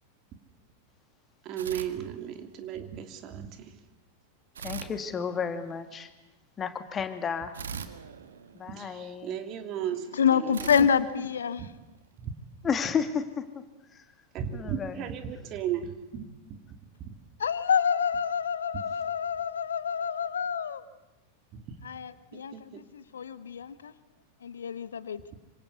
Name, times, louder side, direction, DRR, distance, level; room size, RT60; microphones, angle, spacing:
voice 1, 1.4-3.8 8.7-10.7 11.6-11.7 12.2-12.3 14.3-16.2 16.5-16.6 17.0-17.1 18.7-18.8 21.5-21.6 22.3-22.8, right 9 dB, 35° right, 3.0 m, -35 dB
sound 1, 1.6-2.7 4.5-5.9 7.5-9.2 10.5-12.1, right 6 dB, 65° right, 1.9 m, -42 dB
voice 2, 4.6-6.1 6.6-7.6 8.5-9.4 11.0-11.1 12.6-13.6 14.5-15.1, left 6 dB, 20° left, 2.4 m, -32 dB
voice 3, 10.2-11.6 17.4-20.8 21.8-23.9 24.4-25.2, left 7 dB, 70° left, 1.1 m, -27 dB
26.5 x 26.0 x 8.3 m
figure-of-eight pair, 90°, 0 cm